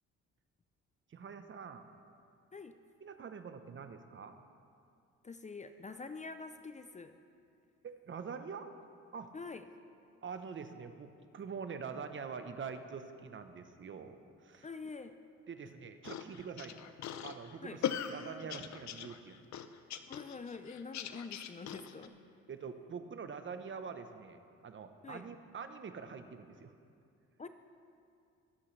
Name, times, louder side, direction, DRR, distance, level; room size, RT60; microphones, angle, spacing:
voice 1, 1.1-1.9 3.0-4.4 7.8-8.7 9.1-9.3 10.2-14.2 14.4-14.7 15.5-16.8 17.2-19.4 22.5-26.7, right 6 dB, 40° right, 8 dB, 0.9 m, -45 dB
voice 2, 5.2-7.1 9.3-9.6 14.6-15.1 17.6-17.8 20.1-22.1 25.0-25.2 27.4-27.5, left 4 dB, 25° left, 9 dB, 0.5 m, -45 dB
sound 1, 16.0-22.1, left 9 dB, 65° left, 0.7 m, -40 dB
22.0 x 8.5 x 3.2 m, 2.4 s
cardioid pair, 90°, 30 cm